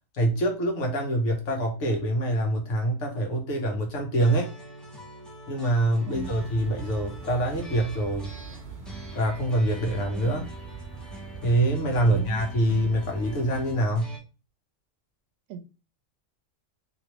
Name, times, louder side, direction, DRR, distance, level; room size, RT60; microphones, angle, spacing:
voice 1, 0.1-4.5 5.5-8.3 9.1-10.5 11.4-14.2, right 1 dB, 70° left, 1.2 m, -25 dB
sound 1, 4.2-14.2, equal, ahead, 0.6 m, -44 dB
voice 2, 6.0-6.4 12.0-12.4 15.5-15.6, right 6 dB, 85° right, 1.0 m, -38 dB
sound 2, 6.1-13.8, right 6 dB, 60° right, 0.9 m, -42 dB
3.0 x 2.8 x 2.9 m
omnidirectional pair, 1.3 m